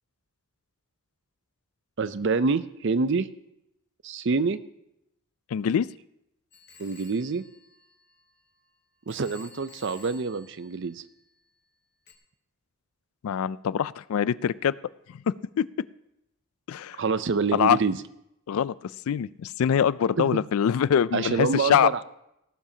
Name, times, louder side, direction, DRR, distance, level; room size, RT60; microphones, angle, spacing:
voice 1, 2.0-3.3 4.0-4.6 6.8-7.4 9.1-11.0 17.0-18.0 20.2-20.3 21.1-22.0, right 4 dB, 55° right, 14 dB, 0.5 m, -26 dB
voice 2, 5.5-5.9 13.2-14.7 15.3-15.7 16.7-17.0 17.5-17.8 18.5-18.7 19.1-21.9, left 8 dB, 70° left, 19 dB, 0.3 m, -24 dB
Telephone, 6.5-8.6 9.1-11.4 12.1-12.2, left 3 dB, 50° left, 1.2 m, -53 dB
18.5 x 12.0 x 2.8 m, 0.82 s
head